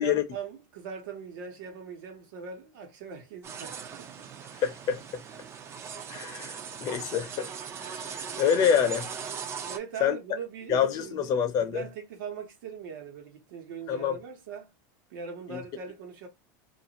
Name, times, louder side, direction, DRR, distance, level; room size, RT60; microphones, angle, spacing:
voice 1, 0.0-4.3 9.6-14.7 15.1-16.3, right 6 dB, 85° right, 1.0 m, -41 dB
sound 1, 3.4-9.8, right 7 dB, 25° right, 0.3 m, -39 dB
voice 2, 4.6-5.2 6.1-7.5 7.9-9.1 10.0-10.2 10.7-11.9 13.9-14.2 15.5-15.6, left 8 dB, 40° left, 0.6 m, -27 dB
2.5 x 2.5 x 2.9 m
supercardioid pair, 150°, 10 cm